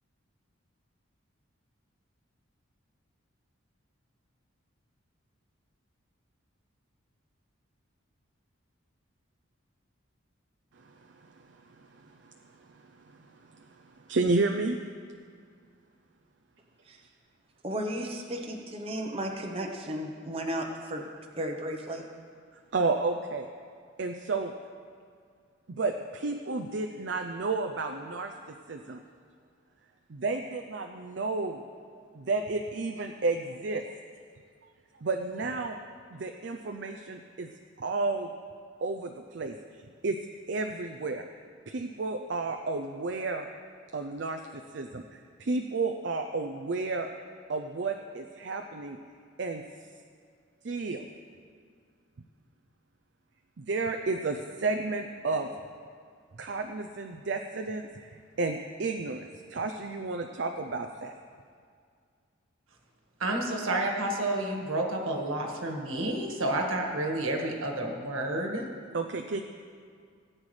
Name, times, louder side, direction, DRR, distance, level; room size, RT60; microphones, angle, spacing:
voice 1, 10.8-13.3 13.6-14.8 22.7-23.5 24.0-24.5 25.7-28.3 28.7-29.0 30.1-31.6 32.0-33.8 35.0-35.8 36.1-37.5 37.8-38.3 38.8-40.2 40.5-41.2 41.7-43.5 43.9-44.4 44.7-47.1 47.5-49.0 49.4-49.6 50.6-51.1 53.6-55.5 56.4-61.2 68.9-69.4, right 3 dB, 55° right, 5 dB, 0.5 m, -32 dB
voice 2, 17.6-21.1 21.3-22.0, equal, 30° right, 1 dB, 0.8 m, -34 dB
voice 3, 63.2-68.6, right 1 dB, 90° right, 1 dB, 1.6 m, -30 dB
18.0 x 8.8 x 3.3 m, 2.1 s
head